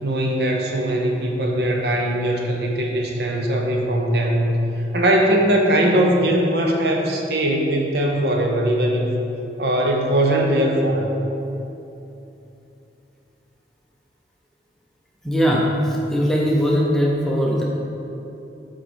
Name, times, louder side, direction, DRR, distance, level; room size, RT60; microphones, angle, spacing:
voice 1, 0.0-4.5 4.9-9.1 9.6-11.1, right 1 dB, 60° right, 1 dB, 0.7 m, -20 dB
voice 2, 15.2-17.6, equal, 5° left, -4 dB, 0.7 m, -20 dB
7.4 x 4.5 x 4.3 m, 2.9 s
head